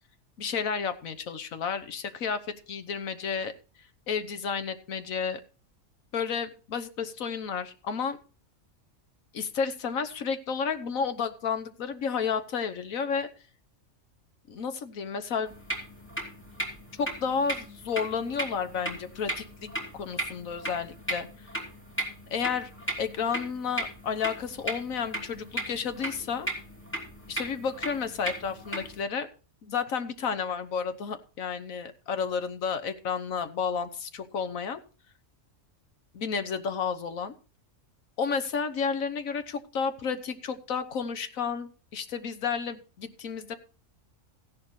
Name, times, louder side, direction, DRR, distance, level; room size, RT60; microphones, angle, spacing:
voice 1, 0.4-3.5 4.1-5.4 6.1-8.2 9.3-13.3 14.5-15.6 17.0-21.5 22.3-22.7 23.0-26.5 27.3-29.3 29.6-34.8 36.1-37.3 38.2-43.6, left 6 dB, 85° left, 10 dB, 1.5 m, -31 dB
sound 1, 15.5-29.0, right 1 dB, 10° left, 2.8 m, -37 dB
15.0 x 11.0 x 3.1 m, 0.36 s
omnidirectional pair, 1.4 m